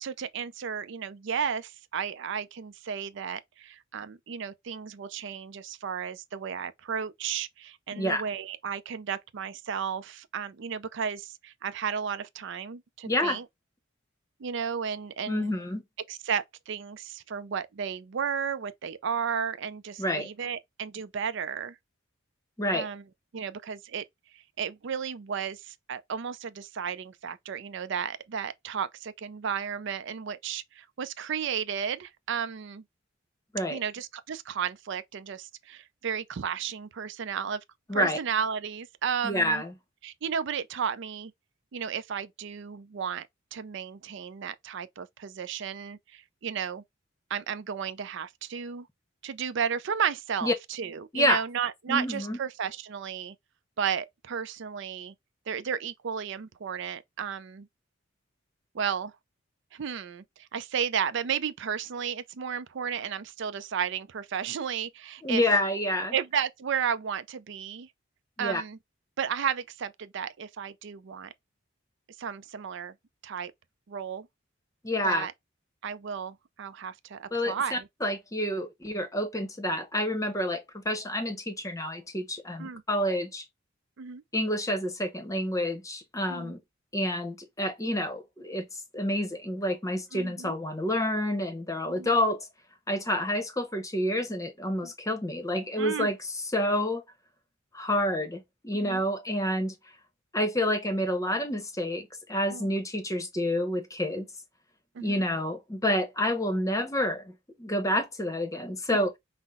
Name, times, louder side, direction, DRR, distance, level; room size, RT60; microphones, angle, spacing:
voice 1, 0.0-13.4 14.4-15.5 16.1-21.8 22.7-23.0 23.3-24.0 24.3-32.8 33.7-37.6 37.9-39.6 40.0-41.3 41.7-46.8 47.3-48.9 49.2-53.3 53.8-55.1 55.5-57.7 58.7-59.1 59.7-65.4 66.1-67.9 68.4-68.8 69.2-71.3 72.2-72.9 73.2-73.5 73.9-74.3 75.0-75.3 75.8-77.9 82.6-82.8 84.0-84.2 86.3-86.5 90.1-90.6 91.9-92.1 94.8-94.9 95.8-96.1 98.7-99.0 102.5-102.7 104.9-105.3, right 7 dB, 60° right, 0.4 m, -33 dB
voice 2, 13.0-13.4 15.3-15.8 20.0-20.3 22.6-22.9 33.5-33.8 37.9-38.2 39.2-39.7 50.4-50.5 51.1-51.4 51.9-52.4 65.2-66.1 68.4-68.6 74.8-75.3 77.3-83.4 84.3-86.6 86.9-88.6 88.9-92.5 92.9-97.0 97.7-99.8 100.3-104.2 105.0-107.3 107.6-109.1, left 1 dB, 15° left, 0.8 m, -28 dB
5.7 x 2.0 x 3.6 m
head